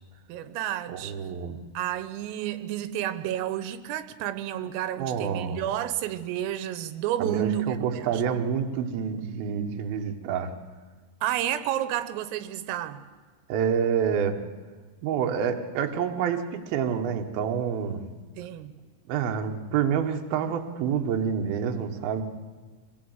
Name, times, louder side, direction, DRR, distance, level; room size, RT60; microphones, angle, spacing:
voice 1, 0.3-1.2 1.8-8.4 11.2-13.0 18.4-18.7, right 12 dB, 85° right, 11 dB, 3.6 m, -31 dB
voice 2, 0.9-1.6 5.0-5.6 7.2-10.5 13.5-14.4 15.0-18.0 19.1-22.2, right 7 dB, 70° right, 3 dB, 2.5 m, -28 dB
25.0 x 18.5 x 8.0 m, 1.4 s
omnidirectional pair, 5.9 m